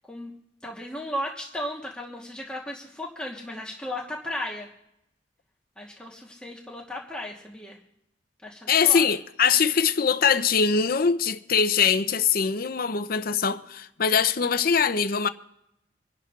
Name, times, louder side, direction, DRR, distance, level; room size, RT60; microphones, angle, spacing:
voice 1, 0.6-4.7 5.8-7.8 8.4-9.0, left 1 dB, 5° left, 1.2 m, -35 dB
voice 2, 8.7-15.3, left 6 dB, 55° left, 0.6 m, -22 dB
26.5 x 11.0 x 2.4 m
head